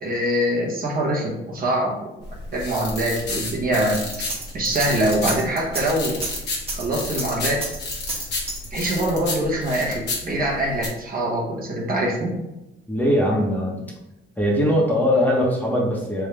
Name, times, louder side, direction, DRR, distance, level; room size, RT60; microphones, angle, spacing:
voice 1, 0.0-2.0 2.5-4.0 4.5-6.2 6.7-7.6 8.7-12.3, right 1 dB, 50° right, -2 dB, 1.1 m, -23 dB
sound 1, 2.2-10.9, left 2 dB, 60° left, 1.2 m, -32 dB
sound 2, 3.9-9.0, right 3 dB, 30° right, 1.3 m, -31 dB
voice 2, 12.9-13.9 14.4-16.3, equal, 10° left, -3 dB, 1.1 m, -21 dB
3.5 x 3.1 x 3.3 m, 0.94 s
cardioid pair, 90°, 20 cm